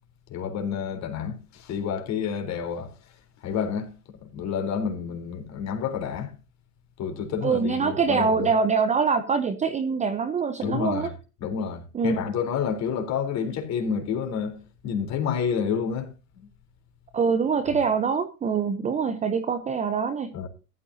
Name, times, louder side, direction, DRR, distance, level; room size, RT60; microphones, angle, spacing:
voice 1, 0.3-2.9 3.4-3.9 4.2-6.3 7.0-8.5 10.6-11.1 11.4-16.1 20.3-20.5, left 7 dB, 35° left, 3.9 m, -29 dB
voice 2, 7.4-11.1 11.9-12.2 17.1-20.3, right 5 dB, 15° right, 0.8 m, -24 dB
15.0 x 13.0 x 2.8 m
hypercardioid pair, 110°, 47 cm